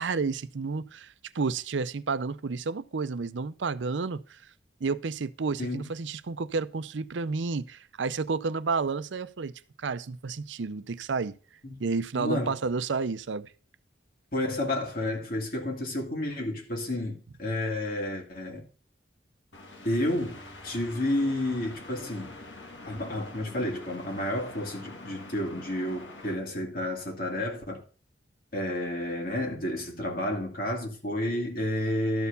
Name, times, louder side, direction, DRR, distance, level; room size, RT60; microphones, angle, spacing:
voice 1, 0.0-4.4 4.8-9.5 9.8-11.3 11.8-13.5, right 4 dB, 85° right, 0.6 m, -31 dB
voice 2, 5.6-5.9 11.6-11.8 12.1-12.6 14.3-18.7 19.8-20.4 20.6-22.3 22.9-27.8 28.5-32.3, left 1 dB, 50° left, 2.5 m, -31 dB
sound 1, 19.5-26.3, left 2 dB, 85° left, 2.2 m, -45 dB
12.5 x 4.5 x 6.8 m
head